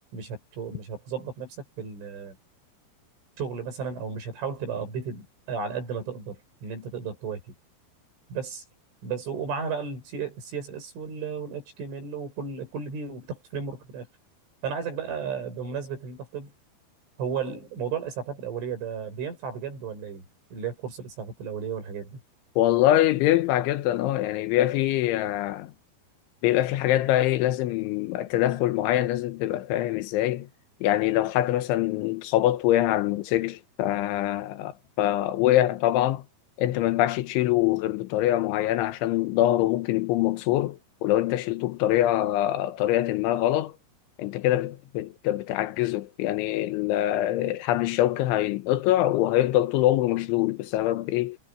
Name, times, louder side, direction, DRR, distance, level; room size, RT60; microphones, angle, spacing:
voice 1, 0.1-2.4 3.4-7.4 8.3-8.6 9.0-14.1 14.6-16.5 17.2-20.2 20.5-22.2, right 6 dB, 85° right, 10.5 m, -34 dB
voice 2, 22.6-25.7 26.4-30.5 30.8-34.7 35.0-36.2 36.6-43.7 44.2-51.4, left 14 dB, 85° left, 3.5 m, -24 dB
omnidirectional pair, 5.4 m